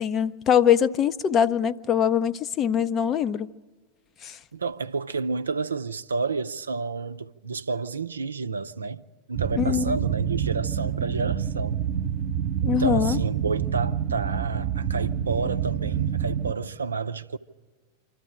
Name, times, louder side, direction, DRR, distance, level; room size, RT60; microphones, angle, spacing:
voice 1, 0.0-3.5 4.2-4.4 9.6-10.0 12.6-13.2, left 8 dB, 30° left, 0.6 m, -23 dB
voice 2, 4.5-11.9 12.6-17.4, right 4 dB, 75° right, 0.6 m, -30 dB
sound 1, 9.3-16.5, right 8 dB, 40° right, 1.0 m, -27 dB
26.0 x 13.5 x 10.0 m
figure-of-eight pair, 90°, 0 cm